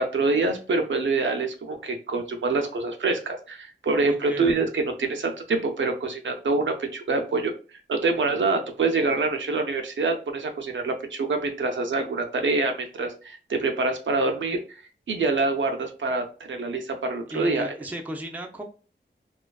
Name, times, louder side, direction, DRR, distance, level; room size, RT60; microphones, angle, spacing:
voice 1, 0.0-7.5 7.9-14.8 15.1-17.7, right 3 dB, 75° right, 4 dB, 0.4 m, -26 dB
voice 2, 4.0-4.5 17.3-18.6, right 1 dB, 10° right, 2 dB, 0.4 m, -35 dB
2.4 x 2.3 x 2.2 m, 0.37 s
wide cardioid pair, 60°, 20 cm